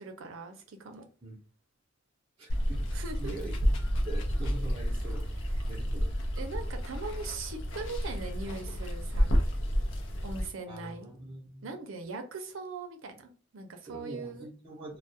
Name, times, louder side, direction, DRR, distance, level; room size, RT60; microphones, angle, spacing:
voice 1, 0.0-1.0 2.9-3.3 6.4-9.4 10.2-11.1 11.6-14.5, right 3 dB, 75° right, 6 dB, 0.5 m, -40 dB
voice 2, 2.4-6.1 10.7-11.7 13.9-15.0, right 2 dB, 25° right, -6 dB, 0.6 m, -44 dB
Water, 2.5-10.5, equal, 65° left, 0.5 m, -30 dB
2.3 x 2.1 x 2.6 m, 0.38 s
head